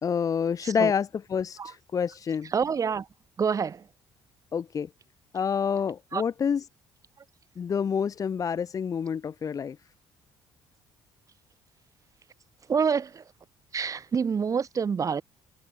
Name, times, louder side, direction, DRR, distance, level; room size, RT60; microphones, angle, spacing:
voice 1, 0.0-2.5 4.5-4.9 5.3-6.6 7.6-9.8, left 7 dB, 40° left, 1.4 m, -28 dB
voice 2, 2.5-3.1 3.4-3.8 6.1-6.2 12.7-13.2 13.7-15.2, right 6 dB, 40° right, 7.5 m, -27 dB
cardioid pair, 95°, 9 cm